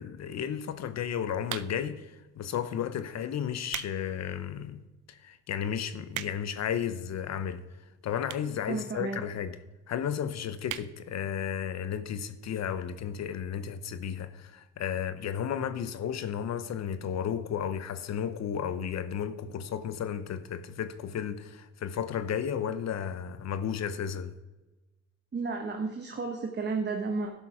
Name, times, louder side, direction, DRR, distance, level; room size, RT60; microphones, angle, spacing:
voice 1, 0.0-4.8 5.1-7.6 8.0-9.6 9.9-24.3, left 8 dB, 60° left, 0.8 m, -33 dB
sound 1, 1.4-2.0 2.7-2.9 3.4-4.0 4.4-4.5 5.1-5.2 5.4-5.5 5.7-6.6 7.4-7.5 8.2-8.6 8.9-9.0 9.2-9.3 9.5-9.6 9.9-10.1 10.6-10.9 11.3-11.4 11.6-11.7, right 15 dB, 80° right, 0.5 m, -38 dB
voice 2, 8.7-9.2 25.3-27.3, right 4 dB, 35° right, 1.1 m, -32 dB
11.5 x 6.8 x 4.8 m
cardioid pair, 90°, 30 cm